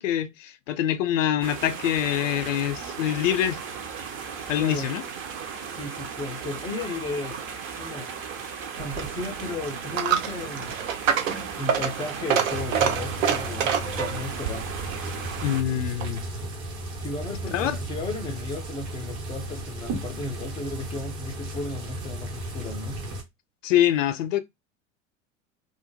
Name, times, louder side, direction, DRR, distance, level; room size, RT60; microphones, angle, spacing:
voice 1, 0.0-3.6 4.5-5.0 15.4-16.2 17.5-17.8 23.6-24.4, left 11 dB, 70° left, 0.5 m, -25 dB
sound 1, 1.4-15.6, right 6 dB, 30° right, 0.6 m, -36 dB
voice 2, 4.5-4.9 5.7-7.4 7.7-8.1 8.8-10.7 11.6-14.7 17.0-23.0, left 3 dB, 15° left, 0.3 m, -34 dB
Coin (dropping), 8.8-16.3, right 7 dB, 75° right, 0.6 m, -28 dB
sound 2, 12.5-23.2, right 1 dB, 55° right, 1.1 m, -35 dB
2.2 x 2.0 x 3.1 m
figure-of-eight pair, 80°, 39 cm